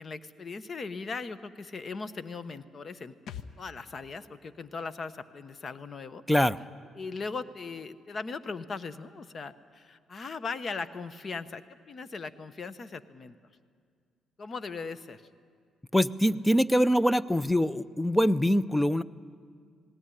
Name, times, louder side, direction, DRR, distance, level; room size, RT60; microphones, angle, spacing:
voice 1, 0.0-3.1 3.6-6.2 6.9-13.3 14.4-15.2, left 4 dB, 45° left, 13 dB, 0.9 m, -39 dB
sound 1, 3.3-6.8 7.0-7.1, left 7 dB, 75° left, 0.8 m, -50 dB
voice 2, 6.3-6.6 15.9-19.0, equal, 5° left, 17 dB, 0.5 m, -24 dB
19.0 x 17.5 x 10.0 m, 2.1 s
cardioid pair, 90°, 0 cm